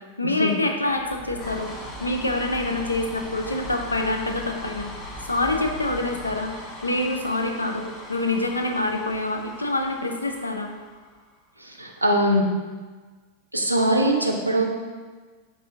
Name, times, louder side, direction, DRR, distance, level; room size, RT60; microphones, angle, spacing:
voice 1, 0.2-1.7 2.0-4.9 5.3-10.7, left 2 dB, 80° left, 4 dB, 0.4 m, -26 dB
sound 1, 0.9-11.4, left 1 dB, 30° left, 0.6 m, -39 dB
voice 2, 11.6-12.4 13.5-14.6, right 1 dB, 85° right, 1 dB, 0.5 m, -22 dB
5.4 x 2.6 x 3.6 m, 1.4 s
figure-of-eight pair, 90°, 0 cm